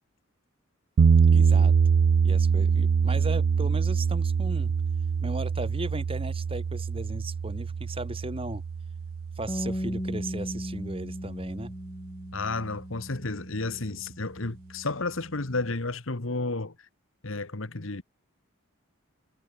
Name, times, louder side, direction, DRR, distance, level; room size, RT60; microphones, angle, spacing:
sound 1, 1.0-11.0, right 6 dB, 70° right, 0.4 m, -24 dB
voice 1, 1.3-1.7 2.2-4.7 5.2-8.6 9.4-11.7, right 1 dB, 25° right, 6.6 m, -36 dB
Bass guitar, 9.5-15.7, equal, 20° left, 6.1 m, -38 dB
voice 2, 12.3-16.7 17.2-18.0, left 3 dB, 70° left, 1.5 m, -32 dB
head